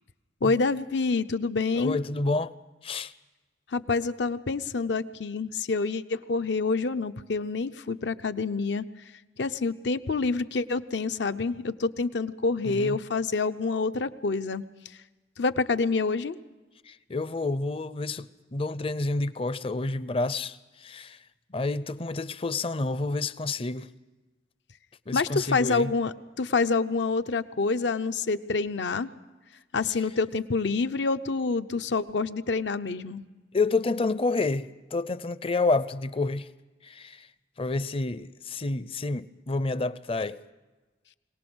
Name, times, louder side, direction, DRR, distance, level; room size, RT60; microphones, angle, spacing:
voice 1, 0.4-2.0 3.7-8.8 9.4-14.6 15.4-16.4 25.1-29.1 29.7-33.2, left 4 dB, 75° left, 0.7 m, -27 dB
voice 2, 1.7-2.5 2.8-3.1 12.6-13.0 16.8-21.2 21.5-23.9 25.1-25.9 33.5-36.5 36.8-37.3 37.6-40.4, left 3 dB, 30° left, 0.5 m, -29 dB
23.0 x 18.5 x 6.2 m
head